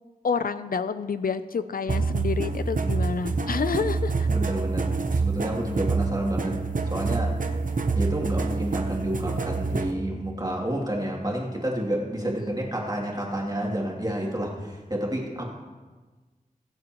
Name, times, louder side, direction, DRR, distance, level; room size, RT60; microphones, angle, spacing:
voice 1, 0.2-4.3 12.4-12.5, left 5 dB, 80° left, 13 dB, 0.4 m, -29 dB
sound 1, 1.9-9.9, right 4 dB, 65° right, 0.8 m, -27 dB
voice 2, 4.3-6.6 6.9-7.4 7.9-15.4, right 1 dB, 25° right, -2 dB, 2.7 m, -29 dB
20.5 x 7.7 x 3.0 m, 1.3 s
wide cardioid pair, 50°, 15 cm